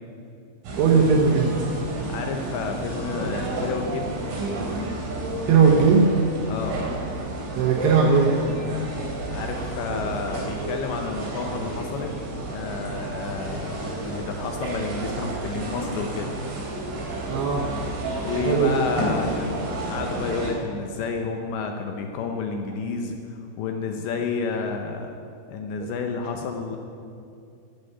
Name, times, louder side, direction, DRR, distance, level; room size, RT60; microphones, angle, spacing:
sound 1, 0.6-20.5, right 2 dB, 50° right, 4.8 m, -31 dB
voice 1, 0.8-1.5 5.5-6.2 7.6-8.4 17.3-17.7 18.5-18.8 25.8-25.9, right 5 dB, 75° right, 0 dB, 2.5 m, -18 dB
voice 2, 2.1-4.2 6.5-6.8 9.3-12.1 12.5-16.3 18.2-23.2 23.6-25.1 25.5-26.8, left 5 dB, 75° left, 4 dB, 2.8 m, -30 dB
12.0 x 10.0 x 9.6 m, 2.6 s
omnidirectional pair, 5.9 m